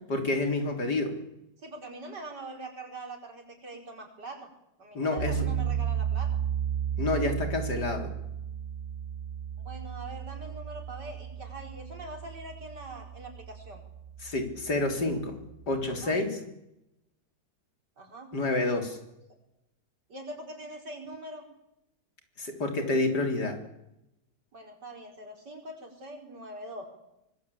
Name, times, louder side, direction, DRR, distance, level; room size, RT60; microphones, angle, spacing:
voice 1, 0.1-1.2 4.9-5.5 7.0-8.1 14.2-15.4 15.7-16.4 18.3-19.0 22.4-23.6, left 2 dB, 75° left, 5 dB, 4.2 m, -28 dB
voice 2, 1.6-4.5 4.8-6.3 9.6-13.8 15.9-16.1 18.0-18.7 20.1-21.5 24.5-26.9, right 2 dB, 80° right, 3 dB, 5.5 m, -43 dB
sound 1, 5.2-16.1, right 9 dB, 50° right, 3.7 m, -34 dB
24.5 x 21.0 x 8.6 m, 0.87 s
omnidirectional pair, 1.8 m